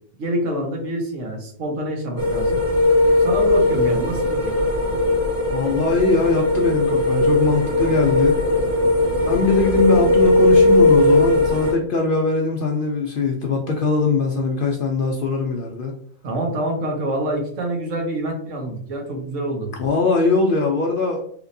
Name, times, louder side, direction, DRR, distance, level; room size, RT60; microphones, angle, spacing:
voice 1, 0.2-2.6 3.2-4.6 16.2-19.7, right 1 dB, 75° right, 1 dB, 1.2 m, -26 dB
sound 1, 2.2-11.7, left 2 dB, 10° right, 1.1 m, -18 dB
voice 2, 5.5-8.4 9.2-16.0 19.8-21.2, left 3 dB, 65° left, 1 dB, 0.5 m, -21 dB
3.4 x 2.9 x 2.6 m, 0.63 s
omnidirectional pair, 1.3 m